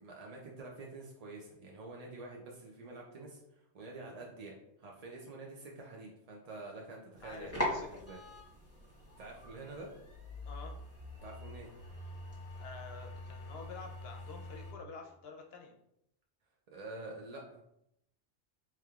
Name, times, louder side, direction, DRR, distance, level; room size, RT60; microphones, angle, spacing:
voice 1, 0.0-8.2 9.2-9.9 11.2-11.7 16.7-17.6, right 2 dB, 50° right, -2 dB, 0.5 m, -47 dB
voice 2, 7.2-7.9 10.4-10.8 12.6-15.7, left 4 dB, 65° left, 3 dB, 0.8 m, -48 dB
sound 1, 7.2-14.7, left 1 dB, 15° left, 1.0 m, -42 dB
4.8 x 3.0 x 2.3 m, 0.78 s
omnidirectional pair, 1.2 m